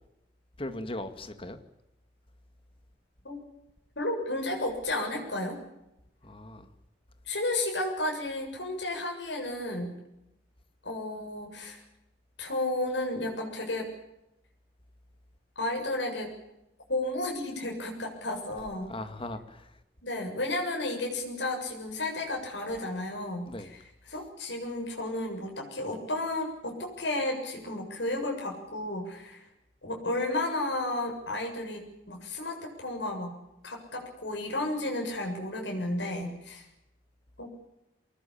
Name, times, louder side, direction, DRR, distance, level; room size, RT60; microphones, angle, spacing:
voice 1, 0.6-1.6 6.2-6.7 18.9-19.7 23.5-23.7, left 1 dB, 30° left, 2.3 m, -38 dB
voice 2, 4.0-5.6 7.3-10.0 10.8-11.8 12.4-13.9 15.6-16.3 16.9-18.9 20.0-29.5 29.8-33.4 33.6-36.7 37.4-37.5, left 2 dB, 80° left, 7.2 m, -33 dB
24.5 x 20.0 x 8.8 m
head